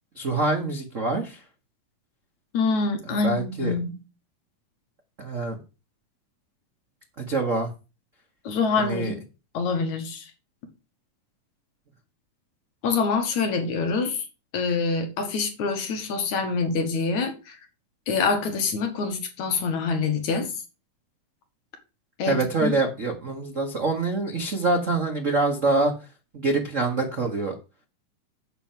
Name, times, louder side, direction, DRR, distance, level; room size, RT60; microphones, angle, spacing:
voice 1, 0.1-1.4 3.2-3.7 5.2-5.6 7.3-7.7 8.8-9.1 22.3-25.9 26.3-27.6, right 3 dB, 90° right, 0.6 m, -25 dB
voice 2, 2.5-4.0 8.4-9.2 9.5-10.3 12.8-14.3 14.5-17.6 18.1-20.5 22.2-22.7, left 4 dB, 60° left, 3.0 m, -25 dB
8.3 x 5.8 x 7.4 m
omnidirectional pair, 3.9 m